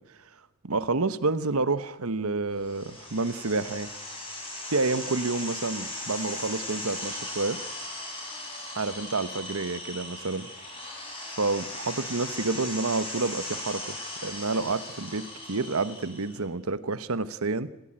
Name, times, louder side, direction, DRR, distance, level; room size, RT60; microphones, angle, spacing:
voice 1, 0.6-3.9 4.7-7.6 8.8-10.5 11.4-14.0 14.2-17.7, right 3 dB, 70° right, 14 dB, 1.1 m, -29 dB
sound 1, 2.6-16.4, left 1 dB, 25° left, 7.6 m, -38 dB
27.0 x 15.5 x 8.8 m, 1.1 s
head